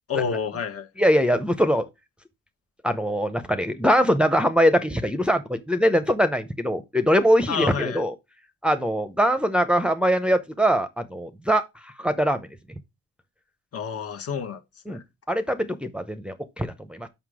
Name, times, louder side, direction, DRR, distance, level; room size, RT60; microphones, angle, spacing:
voice 1, 0.1-0.9 7.5-8.0 13.7-14.6 14.9-15.0, left 6 dB, 50° left, 1.3 m, -29 dB
voice 2, 1.0-1.9 2.8-8.1 8.6-12.5 14.9-15.0 15.3-17.1, equal, 5° right, 0.7 m, -22 dB
5.8 x 5.6 x 4.8 m
cardioid pair, 90°, 30 cm